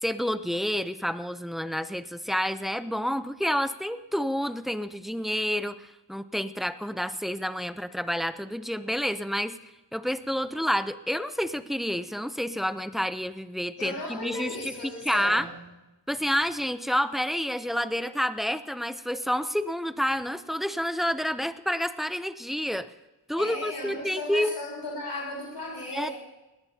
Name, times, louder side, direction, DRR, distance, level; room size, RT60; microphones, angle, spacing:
voice 1, 0.0-9.6 9.9-14.7 15.0-15.5 16.1-22.9 23.3-24.5 25.9-26.1, equal, ahead, 11 dB, 0.6 m, -29 dB
voice 2, 13.8-15.6 23.4-26.1, left 2 dB, 75° left, -3 dB, 4.1 m, -36 dB
20.0 x 18.0 x 2.8 m, 1.0 s
wide cardioid pair, 110°, 43 cm